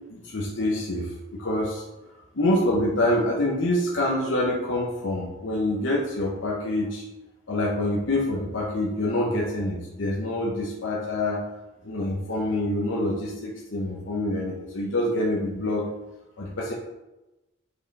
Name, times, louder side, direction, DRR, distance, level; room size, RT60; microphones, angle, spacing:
voice 1, 0.1-1.8 2.3-7.0 7.5-11.4 11.8-15.9 16.4-16.7, left 1 dB, 75° left, -3 dB, 0.9 m, -26 dB
5.3 x 4.9 x 4.0 m, 1.0 s
head